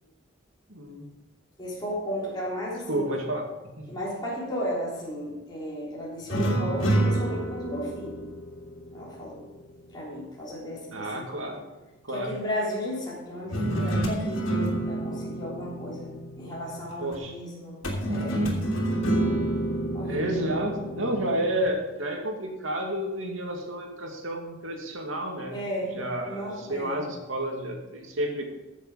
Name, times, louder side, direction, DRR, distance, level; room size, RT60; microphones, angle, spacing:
voice 1, 0.7-1.1 2.9-3.4 3.8-3.9 10.9-11.6 12.0-12.3 17.0-17.3 20.0-25.6 25.9-28.4, right 1 dB, 90° right, 1 dB, 2.5 m, -30 dB
voice 2, 1.6-3.0 3.9-8.2 8.9-9.5 9.9-11.2 12.1-18.5 19.9-20.2 25.5-25.9 26.2-27.0, equal, 20° left, -7 dB, 3.6 m, -34 dB
sound 1, 6.3-9.7 13.5-16.9 17.8-21.7, right 1 dB, 90° left, 3.0 m, -28 dB
15.0 x 7.3 x 4.9 m, 1.1 s
head